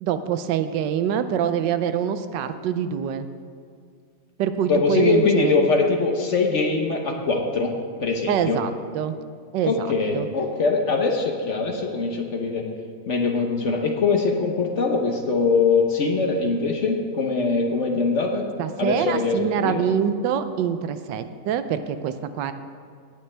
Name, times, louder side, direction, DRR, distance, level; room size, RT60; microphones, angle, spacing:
voice 1, 0.0-3.3 4.4-5.6 8.3-9.1 9.5-9.9 10.1-10.3 18.6-22.5, right 8 dB, 85° right, 10 dB, 1.3 m, -25 dB
voice 2, 4.7-7.7 8.0-8.6 9.6-12.6 13.1-18.4 18.8-19.8, left 4 dB, 50° left, 2 dB, 1.1 m, -22 dB
17.5 x 8.7 x 3.3 m, 2.2 s
omnidirectional pair, 1.9 m